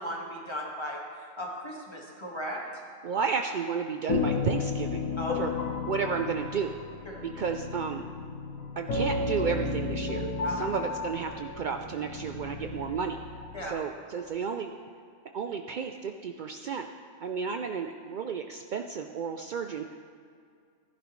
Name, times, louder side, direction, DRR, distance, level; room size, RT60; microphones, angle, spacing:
voice 1, 0.0-2.6 5.2-5.4 7.1-7.2 10.4-10.7 13.5-13.7, equal, 20° left, -2 dB, 1.8 m, -37 dB
voice 2, 3.0-5.1 5.4-5.5 5.8-6.8 7.2-8.0 8.8-10.2 10.5-13.2 13.6-14.7 15.3-16.9 17.2-20.0, right 6 dB, 80° right, 5 dB, 0.4 m, -32 dB
sound 1, 4.1-13.7, left 4 dB, 80° left, 1.5 m, -33 dB
15.5 x 11.0 x 3.1 m, 2.2 s
omnidirectional pair, 1.4 m